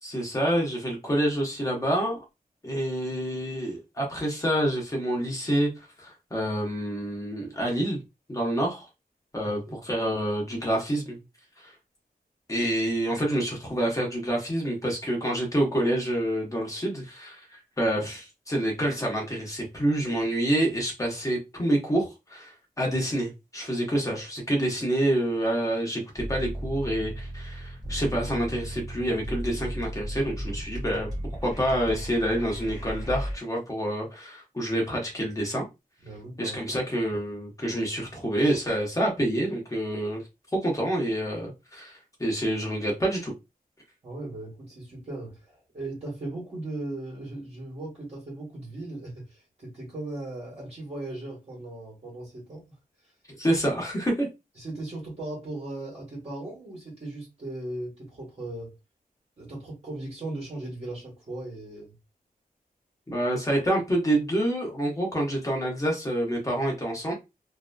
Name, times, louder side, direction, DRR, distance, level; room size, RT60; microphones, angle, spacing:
voice 1, 0.0-2.2 2.6-5.7 6.0-8.0 8.3-8.9 9.3-11.2 11.6-11.7 12.5-31.1 31.4-35.7 36.4-40.2 40.5-43.3 53.3-54.3 63.1-67.1, right 1 dB, 20° left, 0.9 m, -27 dB
voice 2, 9.4-9.7 36.0-36.8 44.0-52.7 53.0-53.1 54.6-58.7 59.4-62.0, right 2 dB, 40° right, 1.2 m, -38 dB
sound 1, 26.2-33.3, right 1 dB, 20° right, 1.4 m, -35 dB
2.7 x 2.5 x 2.2 m
wide cardioid pair, 160°, 16 cm